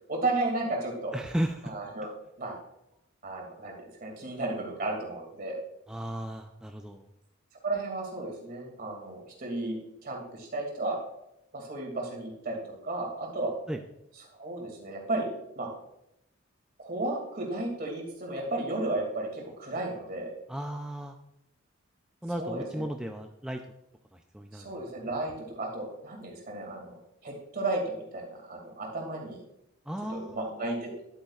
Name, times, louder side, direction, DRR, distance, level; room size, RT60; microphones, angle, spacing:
voice 1, 0.1-1.2 1.6-2.1 2.4-2.5 3.2-3.7 4.0-5.6 7.6-11.0 11.5-13.5 14.4-15.3 15.6-15.7 16.8-20.3 22.4-22.8 24.5-26.9 27.2-29.4 30.1-30.9, right 2 dB, 45° right, 0 dB, 2.4 m, -33 dB
voice 2, 1.1-1.7 5.9-7.0 13.7-13.8 20.5-21.2 22.2-23.6 24.1-24.7 29.9-30.5, right 1 dB, 5° right, 3 dB, 0.4 m, -35 dB
11.0 x 8.3 x 2.4 m, 0.83 s
head